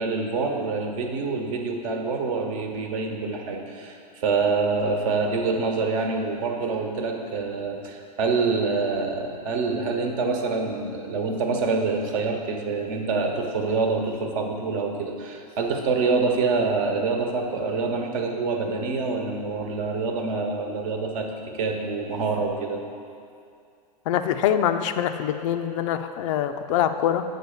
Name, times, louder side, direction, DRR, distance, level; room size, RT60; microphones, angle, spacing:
voice 1, 0.0-21.3 21.5-22.8, right 4 dB, 55° right, 2 dB, 1.1 m, -26 dB
voice 2, 24.1-27.2, left 10 dB, 50° left, 8 dB, 0.4 m, -24 dB
8.4 x 3.9 x 6.8 m, 2.4 s
hypercardioid pair, 105°, 21 cm